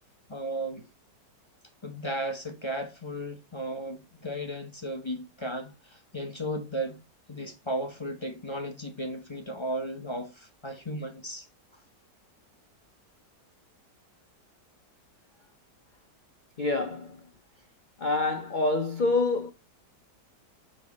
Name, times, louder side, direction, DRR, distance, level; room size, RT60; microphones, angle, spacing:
voice 1, 0.3-0.9 1.8-7.0 7.3-11.5, right 1 dB, 25° left, 0.6 m, -35 dB
voice 2, 16.6-17.2 18.0-19.5, left 3 dB, 80° left, 0.4 m, -26 dB
6.9 x 5.2 x 4.0 m
omnidirectional pair, 1.9 m